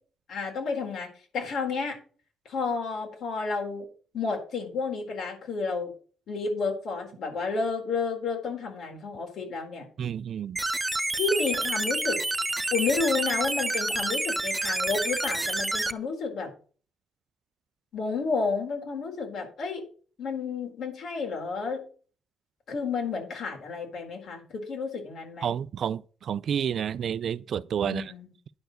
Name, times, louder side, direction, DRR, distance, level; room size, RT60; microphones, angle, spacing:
voice 1, 0.3-1.1 1.3-2.0 2.4-3.9 4.1-5.9 6.3-9.9 11.1-12.2 12.7-16.5 17.9-19.8 20.2-21.8 22.7-25.5 27.8-28.3, left 4 dB, 70° left, 4.1 m, -31 dB
voice 2, 10.0-10.6 25.4-28.1, right 8 dB, 60° right, 0.4 m, -30 dB
sound 1, 10.6-15.9, right 2 dB, 15° right, 0.6 m, -28 dB
10.5 x 4.7 x 7.9 m
cardioid pair, 90°, 0 cm